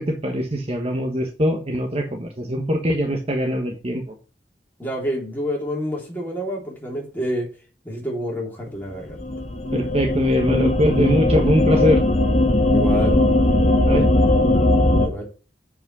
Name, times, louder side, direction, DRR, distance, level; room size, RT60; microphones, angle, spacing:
voice 1, 0.0-4.1 9.7-12.0 13.9-14.1, equal, 35° right, 3 dB, 1.2 m, -22 dB
voice 2, 4.8-7.5 7.8-9.2 12.7-13.2 15.0-15.2, equal, 10° left, -2 dB, 3.3 m, -28 dB
sound 1, 9.1-15.1, left 1 dB, 40° left, 1.6 m, -18 dB
7.7 x 5.0 x 6.2 m, 0.36 s
head